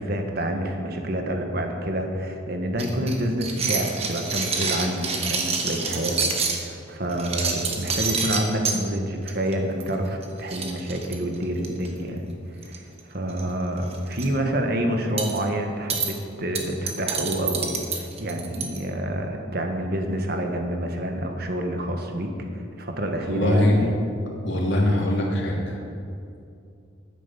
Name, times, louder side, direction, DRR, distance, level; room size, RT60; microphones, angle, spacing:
voice 1, 0.0-23.9, right 1 dB, 50° right, 4 dB, 1.6 m, -28 dB
sound 1, 2.8-6.6 7.1-8.8 9.3-9.5 9.8-9.9 10.2-10.3 10.5-11.9 12.6-13.0 13.3-13.4 13.8-14.2 15.2-15.4 15.9-16.1 16.5-18.8, right 5 dB, 30° right, 1.4 m, -27 dB
voice 2, 23.3-23.8 24.4-25.8, left 1 dB, 65° left, -2 dB, 3.0 m, -22 dB
11.5 x 10.0 x 7.0 m, 2.5 s
head